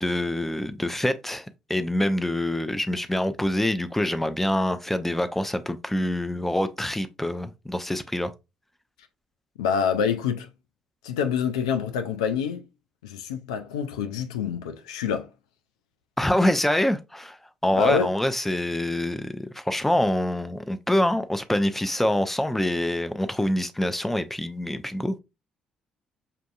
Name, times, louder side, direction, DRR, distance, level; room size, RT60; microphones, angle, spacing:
voice 1, 0.0-8.3 16.2-17.4 17.6-25.2, left 1 dB, 5° left, 0.5 m, -25 dB
voice 2, 9.6-10.5 11.0-12.6 13.0-15.3 17.7-18.1, left 7 dB, 85° left, 0.3 m, -26 dB
5.5 x 2.6 x 2.4 m
hypercardioid pair, 50°, 3 cm